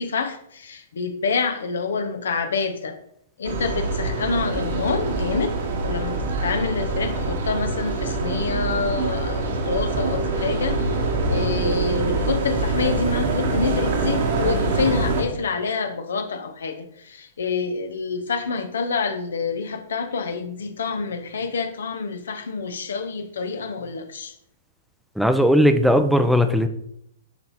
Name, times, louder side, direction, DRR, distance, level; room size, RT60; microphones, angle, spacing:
voice 1, 0.0-3.0 3.4-24.3, left 4 dB, 75° left, 8 dB, 0.9 m, -27 dB
sound 1, 3.4-15.2, right 2 dB, 65° right, 1.9 m, -24 dB
voice 2, 25.2-26.7, equal, ahead, 8 dB, 0.6 m, -17 dB
10.5 x 4.2 x 4.2 m, 0.73 s
hypercardioid pair, 115°, 0 cm